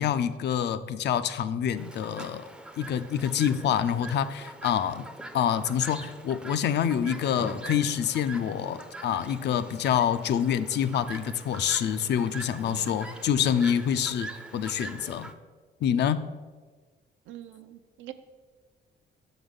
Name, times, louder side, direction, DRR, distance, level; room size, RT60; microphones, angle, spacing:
voice 1, 0.0-2.4 2.8-5.1 5.3-15.3 15.8-16.2, left 9 dB, 60° left, 12 dB, 0.4 m, -27 dB
Chirp tweet, 1.8-15.3, right 2 dB, 5° right, 0.4 m, -43 dB
voice 2, 12.6-13.1 17.3-18.1, right 13 dB, 75° right, 10 dB, 0.5 m, -44 dB
6.2 x 3.9 x 5.2 m, 1.4 s
cardioid pair, 90°, 20 cm